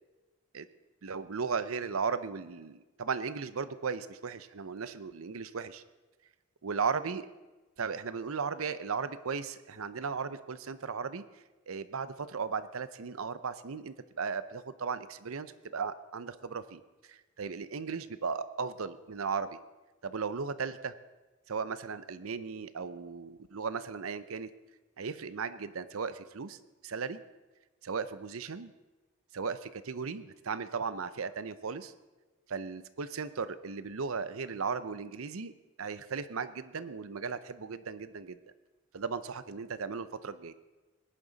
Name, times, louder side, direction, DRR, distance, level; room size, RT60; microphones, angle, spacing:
voice 1, 1.0-5.8 6.6-7.3 7.8-11.2 11.7-16.8 17.1-19.6 20.0-20.9 21.5-24.5 25.0-26.6 26.8-27.2 27.8-28.7 29.3-31.9 32.5-35.5 35.8-38.4 38.9-40.5, right 5 dB, 80° right, 14 dB, 0.7 m, -36 dB
19.5 x 11.0 x 4.1 m, 1.2 s
head